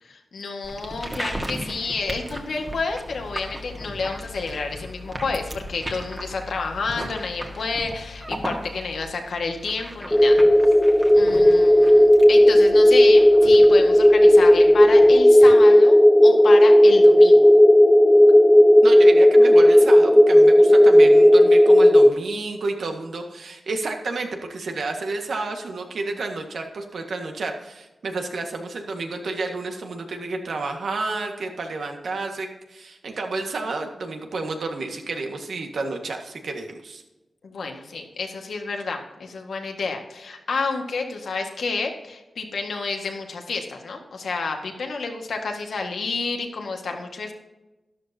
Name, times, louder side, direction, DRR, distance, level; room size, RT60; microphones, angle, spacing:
voice 1, 0.0-10.4 11.1-16.0 16.2-17.4 37.4-47.3, left 4 dB, 85° left, 3 dB, 1.8 m, -30 dB
sound 1, 0.6-15.2, equal, 20° right, 1.7 m, -37 dB
sound 2, 10.1-22.1, equal, 5° left, 0.4 m, -13 dB
voice 2, 18.8-37.0, right 3 dB, 85° right, 3 dB, 1.8 m, -31 dB
13.0 x 12.0 x 2.9 m, 1.0 s
wide cardioid pair, 110°, 0 cm